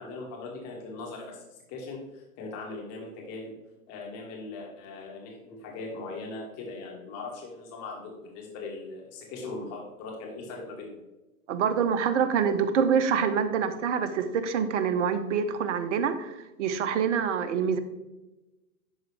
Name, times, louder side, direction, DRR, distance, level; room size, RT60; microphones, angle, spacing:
voice 1, 0.0-3.5 3.9-11.0, left 3 dB, 35° left, -1 dB, 2.6 m, -40 dB
voice 2, 11.5-17.8, right 7 dB, 55° right, 10 dB, 1.0 m, -26 dB
11.5 x 4.0 x 3.4 m, 1.0 s
hypercardioid pair, 115°, 44 cm